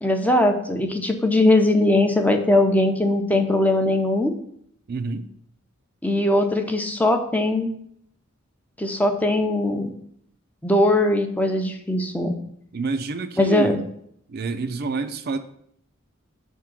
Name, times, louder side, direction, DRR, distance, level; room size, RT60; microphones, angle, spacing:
voice 1, 0.0-4.4 6.0-7.7 8.8-9.9 10.6-12.3 13.4-13.8, left 1 dB, 10° left, 5 dB, 0.6 m, -20 dB
voice 2, 4.9-5.3 12.7-13.8 14.3-15.4, right 3 dB, 50° right, 8 dB, 0.4 m, -28 dB
6.5 x 3.6 x 6.0 m, 0.70 s
head